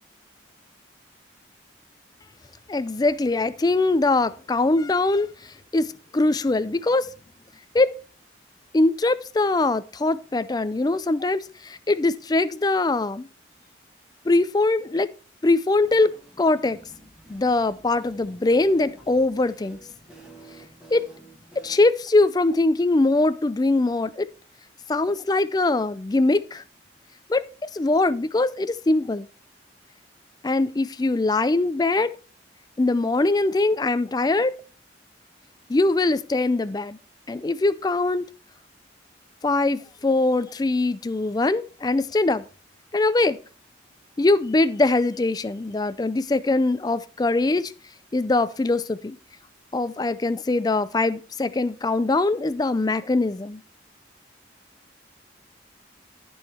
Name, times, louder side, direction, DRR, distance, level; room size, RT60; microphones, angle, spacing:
voice 1, 2.7-5.9 6.1-7.1 7.7-7.9 8.7-13.3 14.3-15.1 15.4-16.8 17.3-19.8 20.9-21.0 21.6-24.3 24.9-26.6 27.3-29.3 30.4-32.1 32.8-34.5 35.7-37.0 37.3-38.3 39.4-42.5 42.9-43.4 44.2-47.7 48.1-49.2 49.7-53.6, left 2 dB, 20° left, 0.4 m, -22 dB
sound 1, 15.7-21.8, right 2 dB, 5° right, 1.8 m, -50 dB
13.5 x 4.8 x 4.2 m
head